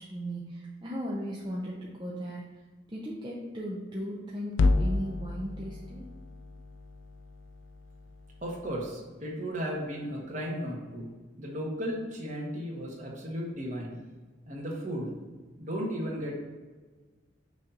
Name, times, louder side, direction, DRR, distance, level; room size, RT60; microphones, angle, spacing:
voice 1, 0.0-2.5 2.9-6.1, equal, 25° right, -5 dB, 0.6 m, -37 dB
sound 1, 4.5-8.9, left 3 dB, 85° left, 0.4 m, -31 dB
voice 2, 8.4-11.1 11.4-14.0 14.5-15.1 15.6-16.4, equal, 40° right, -3 dB, 1.3 m, -35 dB
6.2 x 2.9 x 5.3 m, 1.3 s
head